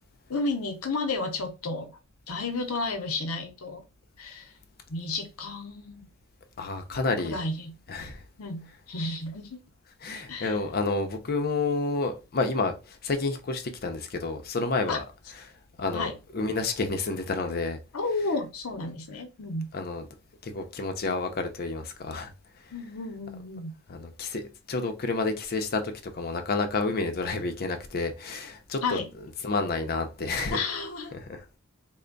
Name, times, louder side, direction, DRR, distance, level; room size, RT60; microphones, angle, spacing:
voice 1, 0.3-1.9 2.3-3.8 4.2-4.5 4.9-6.1 7.2-7.7 8.4-9.6 10.3-10.6 14.9-15.0 15.9-16.1 17.9-19.7 22.7-23.7 28.8-29.1 30.5-31.1, left 3 dB, 90° left, 0.8 m, -32 dB
voice 2, 6.6-7.4 7.9-8.2 10.0-15.0 15.8-17.8 19.7-20.0 20.4-22.3 23.9-29.0 29.4-30.6 31.3-31.4, left 3 dB, 45° left, 0.6 m, -30 dB
3.3 x 2.1 x 3.8 m
head